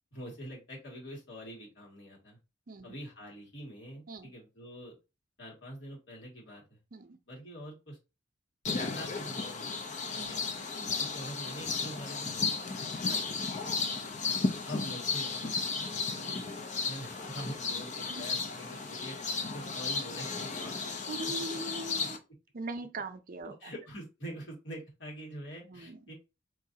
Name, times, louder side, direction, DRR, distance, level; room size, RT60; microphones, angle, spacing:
voice 1, 0.1-2.4 2.8-5.0 5.4-6.8 7.3-8.0 8.9-9.7 10.2-10.4 11.0-12.8 13.1-13.2 14.7-16.3 16.8-19.2 19.5-21.0 21.5-21.6 22.0-22.1 23.4-26.1, equal, 75° left, 2.3 m, -45 dB
sound 1, 8.6-22.2, left 4 dB, 40° left, 0.7 m, -34 dB
voice 2, 10.1-10.4 10.7-11.0 13.1-13.2 13.7-14.0 18.1-18.2 21.1-22.2 22.5-23.7 25.6-26.0, right 2 dB, 50° right, 0.5 m, -41 dB
4.7 x 3.1 x 2.8 m
head